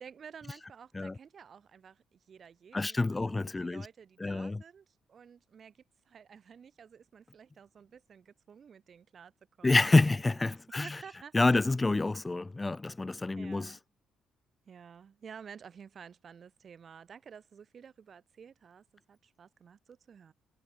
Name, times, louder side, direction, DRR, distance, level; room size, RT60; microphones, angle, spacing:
voice 1, 0.0-9.3 9.6-9.8 10.1-10.2 10.8-11.4 13.4-13.8 14.7-20.3, right 7 dB, 50° right, 4.4 m, -52 dB
voice 2, 2.7-3.9 4.2-4.6 9.6-11.0 11.3-13.8, left 2 dB, 20° left, 0.4 m, -27 dB
cardioid pair, 90°, 0 cm